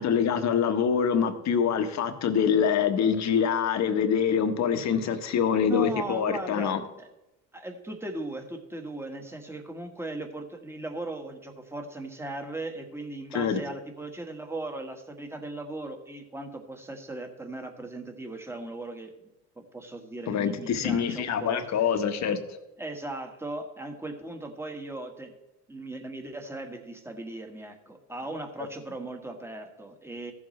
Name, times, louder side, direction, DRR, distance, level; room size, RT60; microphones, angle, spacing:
voice 1, 0.0-6.8 13.3-13.6 20.3-22.4, left 7 dB, 50° left, 8 dB, 1.3 m, -25 dB
voice 2, 5.6-7.1 7.5-19.1 19.6-21.8 22.8-25.3 25.7-30.3, right 2 dB, 5° right, 4 dB, 1.6 m, -38 dB
15.0 x 7.2 x 3.3 m, 0.96 s
supercardioid pair, 90°, 36 cm